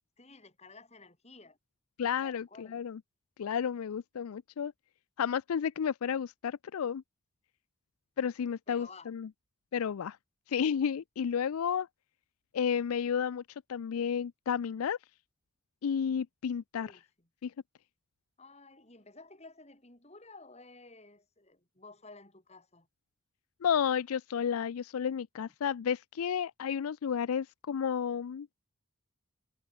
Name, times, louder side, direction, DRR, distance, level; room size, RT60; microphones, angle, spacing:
voice 1, 0.2-1.6 2.2-2.8 8.7-9.1 16.8-17.3 18.4-22.9, left 3 dB, 30° left, 4.6 m, -53 dB
voice 2, 2.0-3.0 3.4-4.7 5.2-7.0 8.2-9.3 9.7-10.2 10.5-11.9 12.5-13.4 13.7-15.0 15.8-16.9 17.4-17.5 23.6-28.5, left 7 dB, 85° left, 0.4 m, -32 dB
head